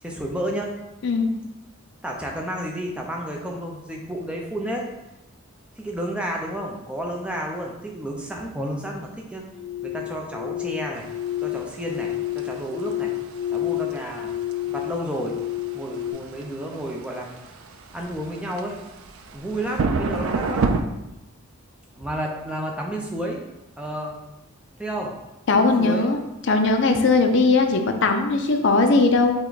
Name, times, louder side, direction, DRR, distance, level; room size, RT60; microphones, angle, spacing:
voice 1, 0.0-0.7 2.0-4.8 5.8-9.4 9.8-11.1 11.4-13.1 13.5-14.4 14.7-15.4 15.7-17.3 17.9-18.8 19.3-20.8 22.0-23.4 23.8-24.1 24.8-25.1 25.5-26.1, right 1 dB, 5° right, 0 dB, 0.5 m, -31 dB
sound 1, 9.5-16.1, left 13 dB, 75° left, 1.4 m, -30 dB
sound 2, 11.0-20.8, right 4 dB, 70° right, 0.4 m, -30 dB
voice 2, 25.5-26.2 26.5-29.3, left 3 dB, 55° left, 4 dB, 0.5 m, -19 dB
5.8 x 2.2 x 3.9 m, 0.95 s
head